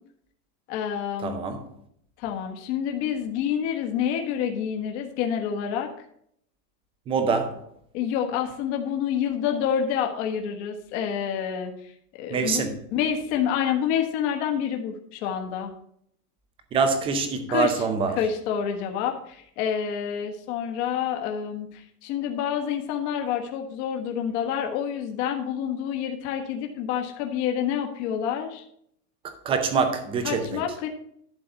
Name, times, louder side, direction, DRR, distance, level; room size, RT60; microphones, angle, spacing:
voice 1, 0.7-1.4 2.2-5.9 7.9-11.7 12.1-12.6 12.9-15.7 17.5-17.8 18.2-28.6 30.2-30.9, left 8 dB, 45° left, 1.4 m, -28 dB
voice 2, 1.2-1.6 7.1-7.6 12.3-12.7 16.7-18.2 29.4-30.6, right 5 dB, 10° right, 0.5 m, -25 dB
11.5 x 4.0 x 6.9 m
supercardioid pair, 160°, 48 cm